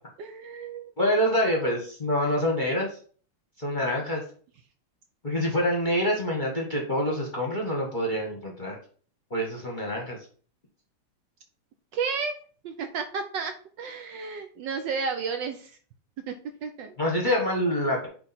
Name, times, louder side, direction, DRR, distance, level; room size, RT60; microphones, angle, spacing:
voice 1, 0.2-0.9 11.9-12.3 12.6-15.8 16.3-16.4 16.6-17.0, right 5 dB, 70° right, 6 dB, 1.2 m, -32 dB
voice 2, 1.0-2.9 3.6-4.2 5.2-8.8 9.3-10.2 17.0-18.1, equal, 30° left, -1 dB, 1.0 m, -26 dB
9.2 x 3.3 x 4.2 m, 0.44 s
omnidirectional pair, 2.4 m